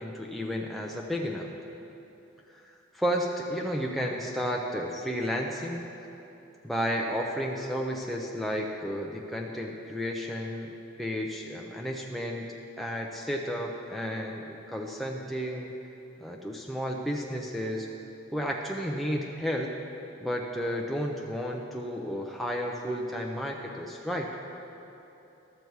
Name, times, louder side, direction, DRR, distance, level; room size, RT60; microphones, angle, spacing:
voice 1, 0.0-1.5 2.6-5.9 6.6-10.7 11.0-12.5 12.8-15.7 16.2-17.9 18.3-19.7 20.2-24.3, equal, ahead, -1 dB, 0.4 m, -32 dB
12.5 x 6.7 x 4.6 m, 2.9 s
head